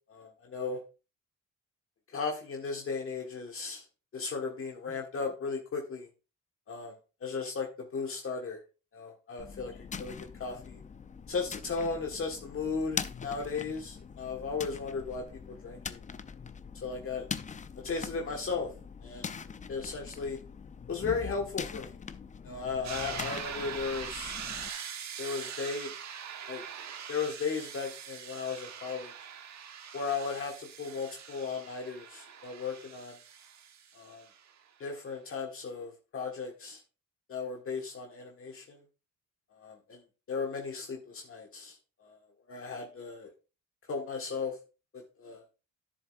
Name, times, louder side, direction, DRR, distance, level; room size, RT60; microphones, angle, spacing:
voice 1, 0.1-0.8 2.1-3.8 4.1-6.1 6.7-6.9 7.2-8.6 8.9-10.8 11.3-16.0 16.8-17.2 17.8-18.7 19.0-19.3 19.7-20.4 20.9-21.9 22.4-24.4 25.2-25.9 26.5-26.6 27.1-29.1 29.9-33.2 33.9-34.2 34.8-36.8 37.3-38.8 39.5-40.0 40.3-43.3 43.9-44.6 44.9-45.4, left 4 dB, 45° left, 1 dB, 1.6 m, -36 dB
sound 1, 9.4-24.7, left 6 dB, 25° left, 0.5 m, -42 dB
sound 2, 22.8-34.5, right 8 dB, 65° right, 1.3 m, -43 dB
10.5 x 7.2 x 2.5 m, 0.31 s
cardioid pair, 90°, 30 cm